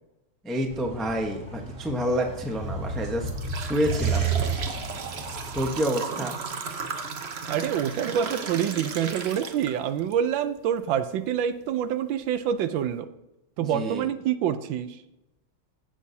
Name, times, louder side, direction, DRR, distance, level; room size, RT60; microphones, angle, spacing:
voice 1, 0.4-3.3 3.5-4.3 5.5-6.4 13.6-14.1, equal, ahead, 2 dB, 0.4 m, -28 dB
sound 1, 0.7-5.8, right 5 dB, 30° right, 2.4 m, -31 dB
sound 2, 2.3-2.5 3.0-10.1 10.6-10.7 11.5-11.6 12.2-12.3 12.7-12.9, right 5 dB, 55° right, 0.7 m, -35 dB
voice 2, 7.5-13.1 13.6-15.0, right 9 dB, 75° right, 11 dB, 1.3 m, -26 dB
15.5 x 6.3 x 2.7 m, 0.93 s
omnidirectional pair, 2.2 m